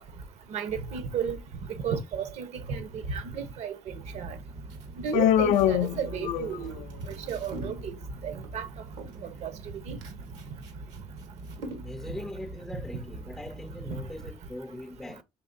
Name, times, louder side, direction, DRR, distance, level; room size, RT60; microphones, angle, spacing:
voice 1, 0.5-1.4 1.8-4.4 5.0-6.8 7.1-8.0 8.2-8.7 9.4-9.5 9.9-10.0 12.1-12.2 13.9-14.0, right 7 dB, 70° right, 0.9 m, -33 dB
sound 1, 3.9-14.4, right 2 dB, 45° right, 0.6 m, -44 dB
sound 2, 4.3-12.2, right 2 dB, 85° right, 1.3 m, -47 dB
Human voice, 5.1-6.8, left 11 dB, 85° left, 0.4 m, -24 dB
voice 2, 11.8-15.2, left 1 dB, 5° left, 0.4 m, -41 dB
5.7 x 3.2 x 2.5 m
cardioid pair, 105°, 12 cm